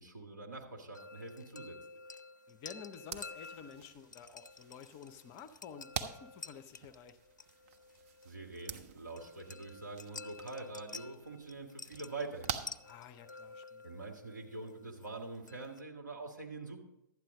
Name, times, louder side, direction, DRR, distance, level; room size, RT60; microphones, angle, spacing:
voice 1, 0.0-1.8 8.2-12.7 13.8-16.8, right 3 dB, 75° right, 0 dB, 1.8 m, -45 dB
sound 1, 0.9-15.8, left 4 dB, 75° left, 0.4 m, -51 dB
voice 2, 2.5-7.2 12.9-13.8, left 7 dB, 30° left, 11 dB, 0.6 m, -51 dB
sound 2, 2.9-13.6, right 7 dB, 45° right, 0.7 m, -47 dB
12.0 x 9.0 x 3.7 m, 0.89 s
figure-of-eight pair, 110°, 10 cm